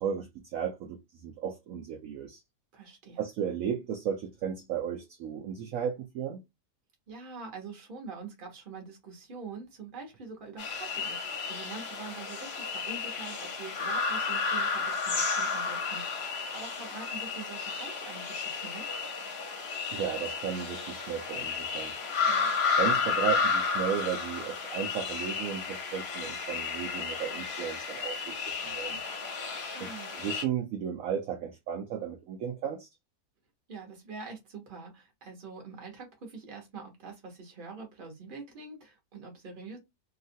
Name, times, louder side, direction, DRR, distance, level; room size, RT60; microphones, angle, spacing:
voice 1, 0.0-2.4 3.2-6.4 19.9-21.9 22.2-22.3 22.8-29.0 29.8-32.9, right 8 dB, 70° right, 0.8 m, -34 dB
voice 2, 2.7-3.2 7.1-18.9 22.3-22.6 29.5-30.1 33.7-39.8, right 4 dB, 40° right, 0.9 m, -45 dB
sound 1, 10.6-30.4, left 5 dB, 50° left, 0.8 m, -32 dB
2.8 x 2.4 x 2.6 m
omnidirectional pair, 1.8 m